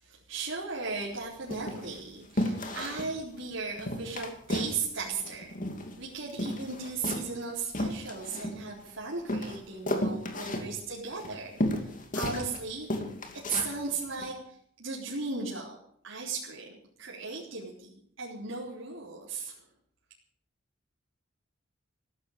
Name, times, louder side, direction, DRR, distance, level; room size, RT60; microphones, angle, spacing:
voice 1, 0.0-5.6 6.0-12.9 13.5-14.3 14.8-15.8 16.0-16.7 17.0-17.9 18.2-19.6, right 4 dB, 85° right, -5 dB, 4.2 m, -36 dB
sound 1, 0.9-1.1 1.5-2.0 2.4-3.1 3.4-3.5 3.8-4.8 5.0-6.0 6.3-8.9 9.3-12.6 12.9-13.7 14.2-14.3, left 1 dB, 40° left, 2.7 m, -33 dB
16.5 x 13.0 x 6.8 m, 0.64 s
head